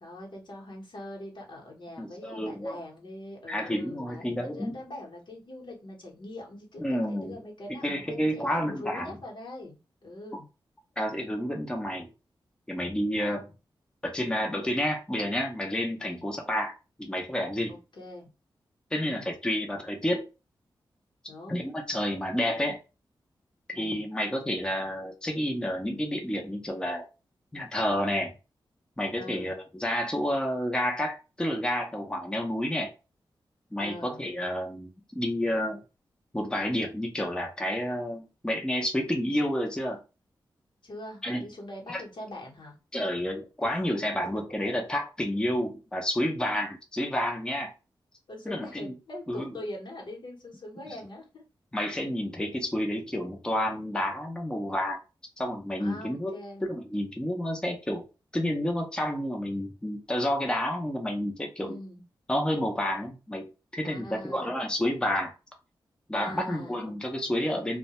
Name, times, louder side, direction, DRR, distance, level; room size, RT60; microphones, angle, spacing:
voice 1, 0.0-10.5 16.0-16.2 17.7-18.3 19.0-19.3 21.3-21.6 23.7-24.1 29.2-29.5 33.8-34.2 40.8-42.8 48.3-51.4 55.8-56.7 61.6-62.0 63.8-64.5 66.1-66.9 67.4-67.7, left 1 dB, 65° left, -1 dB, 0.9 m, -43 dB
voice 2, 2.0-2.8 3.5-4.8 6.8-7.4 7.7-9.2 11.0-12.1 12.7-13.5 14.0-17.8 18.9-20.3 21.5-22.8 23.7-27.0 27.5-28.3 29.0-32.9 33.7-35.8 36.3-40.0 41.2-41.5 41.9-42.0 42.9-47.7 48.5-48.9 49.3-49.5 51.7-55.0 55.4-58.0 58.3-61.8 62.3-65.3 66.1-67.8, equal, 10° left, 2 dB, 0.6 m, -30 dB
2.2 x 2.1 x 2.8 m, 0.30 s
cardioid pair, 70°, 9 cm